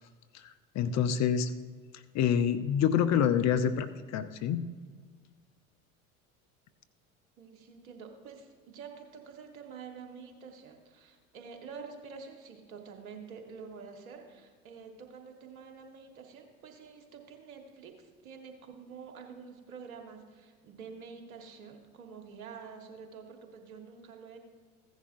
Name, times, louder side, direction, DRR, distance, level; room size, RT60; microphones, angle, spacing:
voice 1, 0.3-1.5 2.1-4.6, left 8 dB, 40° left, 11 dB, 0.6 m, -27 dB
voice 2, 7.4-24.4, right 5 dB, 70° right, 4 dB, 1.6 m, -48 dB
15.5 x 10.5 x 2.6 m, 1.5 s
figure-of-eight pair, 70°, 44 cm